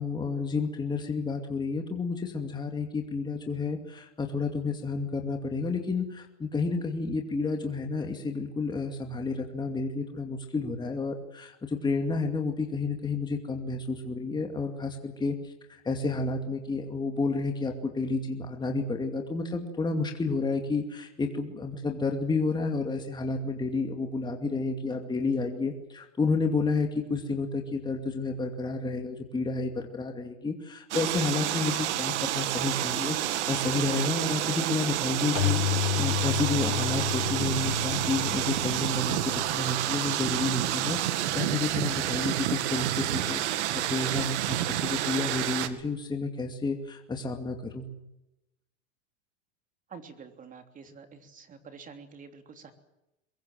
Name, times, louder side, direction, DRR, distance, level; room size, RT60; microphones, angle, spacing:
voice 1, 0.0-15.4 15.7-47.9, left 3 dB, 10° left, 3 dB, 2.5 m, -30 dB
sound 1, 30.9-45.7, right 13 dB, 75° right, 2.3 m, -29 dB
Keyboard (musical), 35.3-39.8, left 19 dB, 85° left, 1.3 m, -31 dB
voice 2, 49.9-52.7, right 5 dB, 20° right, 7 dB, 3.3 m, -48 dB
23.0 x 22.5 x 7.6 m, 0.91 s
supercardioid pair, 145°, 35 cm